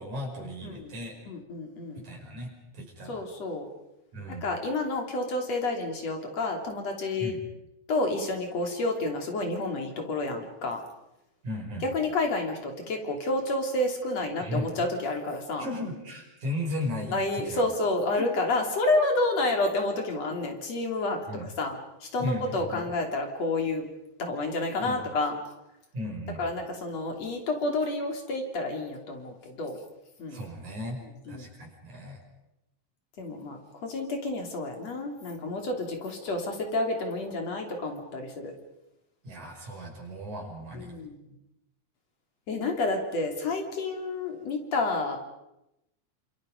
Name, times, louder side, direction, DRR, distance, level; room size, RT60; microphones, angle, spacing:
voice 1, 0.0-1.2 2.0-3.2 4.1-4.4 7.2-7.4 11.4-11.9 14.4-14.7 15.6-17.6 18.1-18.3 21.3-21.5 22.2-22.9 24.8-25.0 25.9-26.4 30.3-31.0 31.3-32.2 39.2-40.9, left 1 dB, 75° right, 1 dB, 6.9 m, -36 dB
voice 2, 1.3-2.0 3.1-3.7 4.3-7.3 7.9-10.8 11.8-15.7 17.1-23.9 24.2-25.4 26.4-29.8 30.2-30.4 31.3-31.5 33.2-38.5 40.7-41.3 42.5-45.2, left 2 dB, 60° left, 3 dB, 4.3 m, -30 dB
29.0 x 27.0 x 5.3 m, 0.90 s
omnidirectional pair, 3.4 m